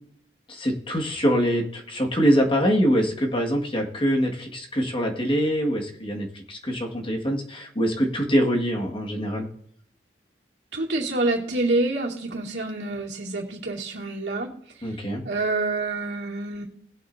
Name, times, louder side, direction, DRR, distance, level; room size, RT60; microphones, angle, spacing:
voice 1, 0.5-9.5 14.8-15.2, equal, 30° left, 0 dB, 1.8 m, -24 dB
voice 2, 10.7-14.5 15.2-16.6, right 2 dB, 80° right, -2 dB, 2.5 m, -27 dB
19.5 x 7.7 x 2.7 m, 0.70 s
head